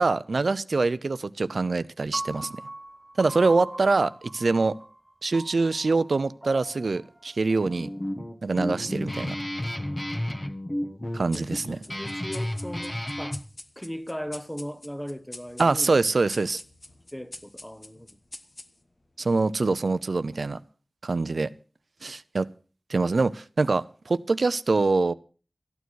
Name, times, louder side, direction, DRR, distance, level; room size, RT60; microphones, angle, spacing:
voice 1, 0.0-2.6 3.2-4.8 5.2-7.9 8.4-9.4 11.1-11.8 15.6-16.6 19.2-20.6 21.0-21.5 22.0-22.5 22.9-25.1, right 3 dB, 85° right, 0.6 m, -24 dB
Piano, 2.1-8.3, right 1 dB, 25° right, 1.1 m, -41 dB
Guitar, 7.6-13.4, left 1 dB, 30° left, 1.4 m, -32 dB
sound 1, 11.3-19.1, left 2 dB, 50° left, 1.2 m, -46 dB
voice 2, 12.0-13.4 13.8-15.9 17.1-18.1, equal, 10° left, 1.1 m, -37 dB
14.0 x 9.5 x 6.3 m
wide cardioid pair, 65°, 0 cm